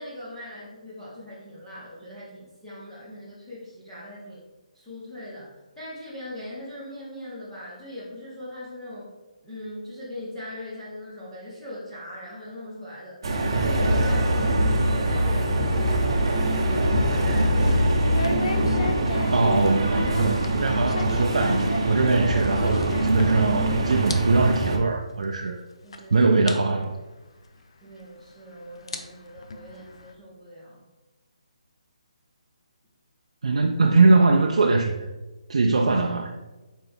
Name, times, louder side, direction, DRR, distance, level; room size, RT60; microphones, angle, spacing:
voice 1, 0.0-4.4 4.7-9.1 9.4-13.2 13.5-16.0 16.9-18.0 25.8-26.3 27.8-30.8, left 1 dB, 5° left, -12 dB, 0.8 m, -40 dB
sound 1, 13.2-24.8, right 1 dB, 40° right, 0.8 m, -23 dB
sound 2, 15.7-23.6 23.9-24.2 24.5-24.6 25.3-25.4 25.9-26.0 26.5-26.6 27.9-28.0 28.7-30.1, left 3 dB, 50° left, 0.6 m, -34 dB
voice 2, 19.3-25.6 26.1-27.0 33.4-35.1 35.5-36.4, right 3 dB, 60° right, 2 dB, 0.5 m, -21 dB
5.9 x 4.5 x 3.5 m, 1.1 s
hypercardioid pair, 175°, 4 cm